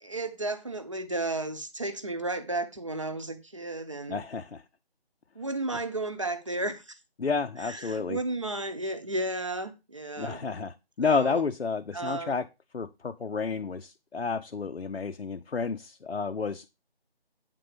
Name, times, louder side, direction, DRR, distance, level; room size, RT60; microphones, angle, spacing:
voice 1, 0.0-4.2 5.3-7.0 7.6-10.4 11.0-11.5 11.9-12.3, right 2 dB, 30° right, 0.9 m, -33 dB
voice 2, 4.1-4.6 7.2-8.2 10.2-12.5 12.7-16.6, left 5 dB, 85° left, 0.8 m, -30 dB
9.1 x 3.9 x 6.8 m
figure-of-eight pair, 170°, 31 cm